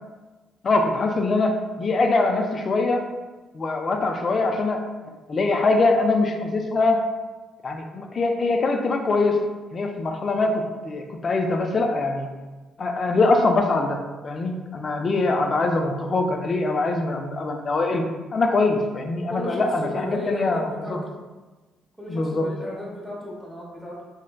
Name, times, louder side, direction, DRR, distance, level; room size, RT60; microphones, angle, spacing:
voice 1, 0.6-3.1 3.5-4.8 5.3-7.0 7.6-9.4 9.7-12.3 12.8-14.0 14.2-18.0 18.3-21.0 22.1-22.5, left 3 dB, 45° left, 3 dB, 0.3 m, -23 dB
voice 2, 19.3-21.2 22.0-24.0, equal, 5° right, -5 dB, 0.8 m, -34 dB
3.2 x 2.0 x 2.3 m, 1.2 s
cardioid pair, 90°, 0 cm